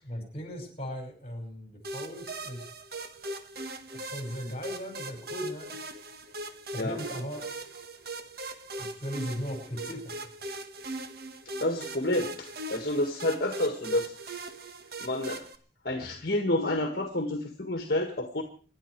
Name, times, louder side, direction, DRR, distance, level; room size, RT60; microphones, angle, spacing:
voice 1, 0.0-2.7 3.9-5.8 6.7-7.5 8.8-10.1, equal, 30° left, 4 dB, 5.3 m, -37 dB
sound 1, 1.8-15.6, right 2 dB, 55° right, 1.6 m, -40 dB
voice 2, 11.6-14.1 15.0-15.5 15.9-18.4, left 1 dB, 55° left, 5 dB, 1.7 m, -29 dB
26.5 x 11.0 x 4.7 m, 0.41 s
head